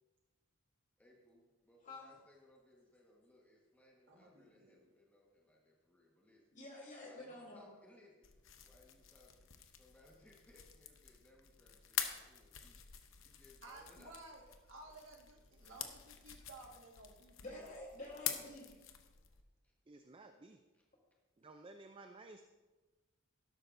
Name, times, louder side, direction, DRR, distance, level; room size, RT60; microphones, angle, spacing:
voice 1, 1.0-6.5 7.0-8.3 8.6-12.8 13.2-14.5 19.6-19.7 20.2-20.8, left 1 dB, 10° left, -2 dB, 1.4 m, -66 dB
voice 2, 1.8-2.2 6.5-7.7 17.4-18.8, left 2 dB, 40° left, -2 dB, 3.4 m, -49 dB
voice 3, 4.1-4.9 13.6-14.4 14.7-17.6, right 2 dB, 65° right, 0 dB, 1.7 m, -56 dB
sound 1, 8.2-19.4, left 9 dB, 70° left, 0.8 m, -47 dB
voice 4, 19.9-20.6 21.4-22.4, right 2 dB, 25° right, 6 dB, 0.4 m, -55 dB
12.0 x 12.0 x 2.6 m, 1.2 s
head